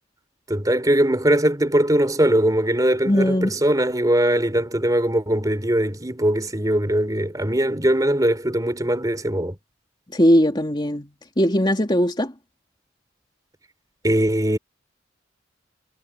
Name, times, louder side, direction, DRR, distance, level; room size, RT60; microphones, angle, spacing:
voice 1, 0.5-9.6 14.0-14.6, right 1 dB, 20° right, 3.5 m, -21 dB
voice 2, 3.1-3.6 10.1-12.3, equal, 25° left, 2.8 m, -19 dB
head